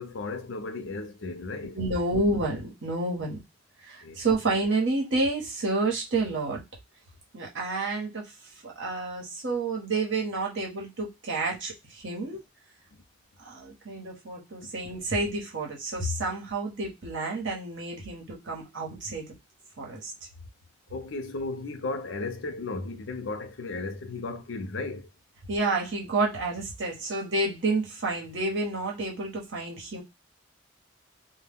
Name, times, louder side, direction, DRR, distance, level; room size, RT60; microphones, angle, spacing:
voice 1, 0.0-1.8 4.0-4.2 20.9-25.1, left 3 dB, 70° left, 0.5 m, -35 dB
voice 2, 1.7-3.4 3.8-6.6 7.3-8.3 8.6-12.4 13.4-19.2 19.8-20.1 25.5-30.0, right 2 dB, 65° right, 1.0 m, -29 dB
2.2 x 2.1 x 3.4 m
head